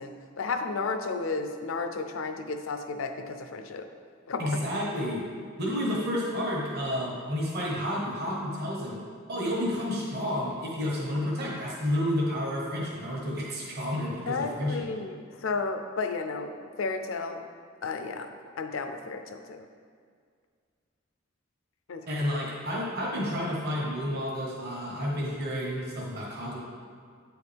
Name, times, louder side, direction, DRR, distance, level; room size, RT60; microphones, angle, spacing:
voice 1, 0.0-3.9 4.3-4.6 14.3-17.4 17.8-18.3 18.6-19.6 21.9-22.1, left 4 dB, 75° left, 6 dB, 0.5 m, -33 dB
voice 2, 4.4-5.2 5.6-9.0 9.3-14.9 22.1-26.6, equal, 50° right, -4 dB, 1.2 m, -30 dB
8.7 x 4.7 x 3.4 m, 2.1 s
head